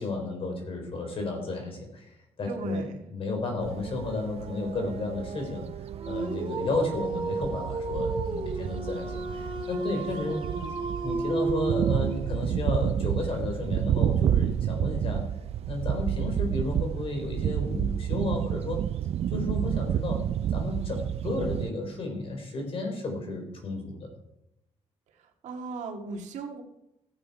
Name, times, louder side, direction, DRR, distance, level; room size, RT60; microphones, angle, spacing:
voice 1, 0.0-2.9 3.1-5.7 6.0-10.4 11.0-15.3 15.7-18.8 19.3-20.2 20.5-24.1, left 2 dB, 50° left, 3 dB, 3.8 m, -32 dB
voice 2, 2.5-3.1 9.9-10.9 25.1-26.6, right 4 dB, 85° right, 2 dB, 1.9 m, -38 dB
sound 1, 3.6-21.7, right 10 dB, 60° right, 0.4 m, -30 dB
Dog, 6.0-12.3, right 3 dB, 40° right, 1.5 m, -32 dB
14.5 x 8.5 x 4.7 m, 0.84 s
cardioid pair, 110°, 12 cm